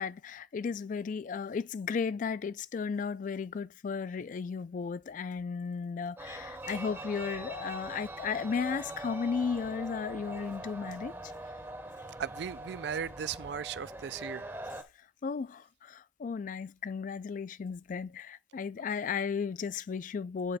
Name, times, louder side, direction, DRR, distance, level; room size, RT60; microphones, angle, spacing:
voice 1, 0.0-11.1 15.2-20.6, left 5 dB, 45° left, 0.3 m, -35 dB
sound 1, 6.2-14.8, right 1 dB, 10° right, 0.7 m, -43 dB
voice 2, 12.2-14.5, right 7 dB, 65° right, 0.3 m, -37 dB
8.8 x 4.3 x 4.1 m
head